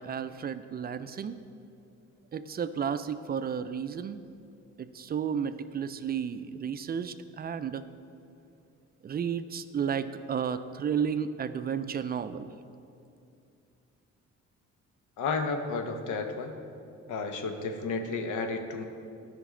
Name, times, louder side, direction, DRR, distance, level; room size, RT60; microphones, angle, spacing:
voice 1, 0.0-1.4 2.3-4.2 4.8-7.8 9.0-12.5, right 7 dB, 30° right, 12 dB, 0.4 m, -32 dB
voice 2, 15.2-16.5 17.1-18.8, left 4 dB, 80° left, 5 dB, 0.9 m, -32 dB
12.5 x 5.2 x 3.7 m, 2.6 s
cardioid pair, 90°, 30 cm